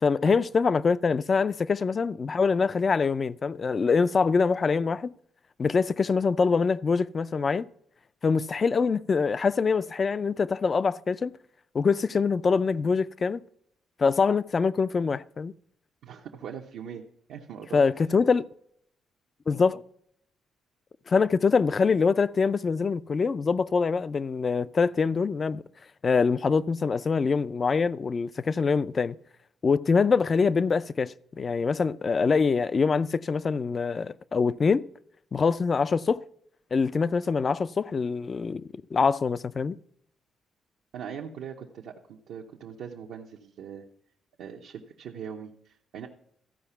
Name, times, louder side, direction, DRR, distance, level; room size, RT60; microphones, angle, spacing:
voice 1, 0.0-5.1 5.6-7.7 8.2-11.3 11.7-13.4 14.0-15.5 17.7-18.4 19.5-19.8 21.1-25.6 26.0-29.2 29.6-34.9 35.3-36.2 36.7-39.8, left 5 dB, 40° left, 0.3 m, -24 dB
voice 2, 16.0-17.0 17.3-18.2 40.9-43.8 44.4-46.1, right 7 dB, 80° right, 0.8 m, -41 dB
14.0 x 4.8 x 5.6 m
cardioid pair, 90°, 0 cm